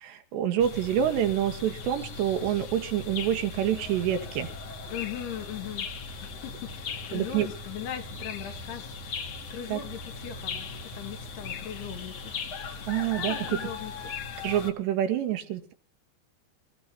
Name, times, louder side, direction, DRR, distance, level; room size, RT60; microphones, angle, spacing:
voice 1, 0.0-4.5 7.1-7.5 9.7-9.8 12.9-13.6 14.4-15.7, right 10 dB, 80° right, 6 dB, 3.5 m, -27 dB
sound 1, 0.6-14.7, left 4 dB, 50° left, 2.0 m, -38 dB
voice 2, 4.9-5.9 6.2-8.9 9.5-12.3 12.7-12.9 13.2-13.9, left 9 dB, 70° left, 6 dB, 3.5 m, -39 dB
26.5 x 14.5 x 2.9 m, 0.40 s
omnidirectional pair, 5.0 m